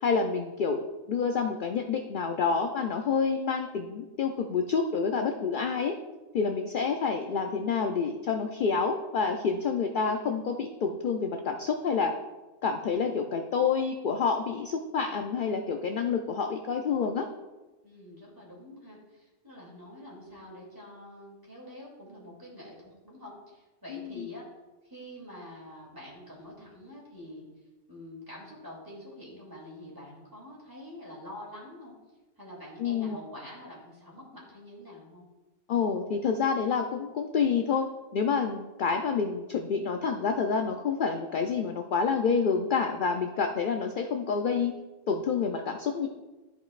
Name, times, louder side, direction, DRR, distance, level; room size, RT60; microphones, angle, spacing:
voice 1, 0.0-0.8 1.1-5.9 6.3-12.1 12.6-17.2 23.9-24.3 32.8-33.2 35.7-37.8 38.1-44.7 45.1-46.1, left 5 dB, 55° left, 4 dB, 0.6 m, -28 dB
voice 2, 17.8-24.5 24.8-27.5 27.9-31.9 32.4-35.2, left 1 dB, 15° right, -5 dB, 2.6 m, -46 dB
13.5 x 5.1 x 2.4 m, 1.1 s
omnidirectional pair, 1.3 m